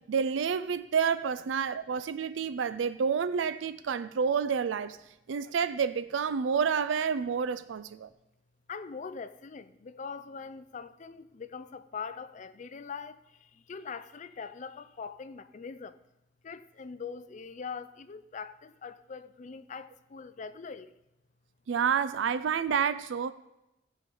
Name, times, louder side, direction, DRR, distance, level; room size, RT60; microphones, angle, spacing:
voice 1, 0.0-5.0 5.3-8.1 21.7-23.3, right 6 dB, 85° right, 0.4 m, -29 dB
voice 2, 8.7-13.2 13.7-15.9 16.4-20.9, left 5 dB, 40° left, 0.4 m, -42 dB
15.0 x 5.2 x 5.4 m
head